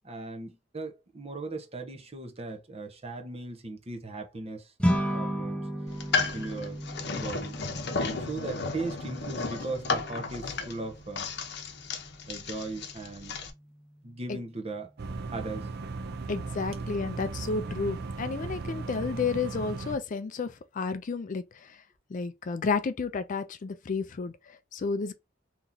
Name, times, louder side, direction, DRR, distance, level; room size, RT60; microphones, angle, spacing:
voice 1, 0.0-4.7 5.1-5.6 6.3-6.8 7.1-7.6 8.0-11.3 12.3-13.3 14.0-14.9 15.3-15.7, right 3 dB, 35° right, 0.9 m, -38 dB
sound 1, 4.8-14.3, equal, 5° left, 0.8 m, -35 dB
sound 2, 5.9-13.5, left 4 dB, 60° left, 0.8 m, -34 dB
sound 3, 15.0-20.0, right 3 dB, 60° right, 0.5 m, -36 dB
voice 2, 16.3-21.8 22.1-25.1, left 4 dB, 45° left, 0.4 m, -32 dB
3.0 x 2.7 x 3.6 m
head